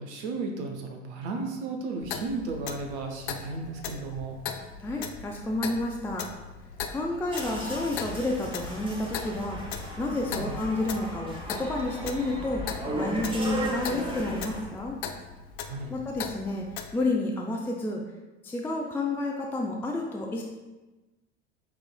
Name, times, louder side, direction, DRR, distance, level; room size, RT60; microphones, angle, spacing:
voice 1, 0.0-4.4 10.3-10.5 15.6-15.9, right 3 dB, 70° right, 3 dB, 0.7 m, -34 dB
Clock, 2.0-16.9, left 7 dB, 60° left, 0.5 m, -39 dB
voice 2, 4.8-6.3 6.9-9.6 10.0-12.6 12.9-15.0 15.9-16.7 16.9-18.0 18.4-20.4, left 2 dB, 5° left, 0 dB, 0.4 m, -30 dB
sound 1, 7.3-14.6, right 1 dB, 15° right, 1.0 m, -36 dB
6.9 x 3.1 x 2.2 m, 1.1 s
figure-of-eight pair, 65°, 35 cm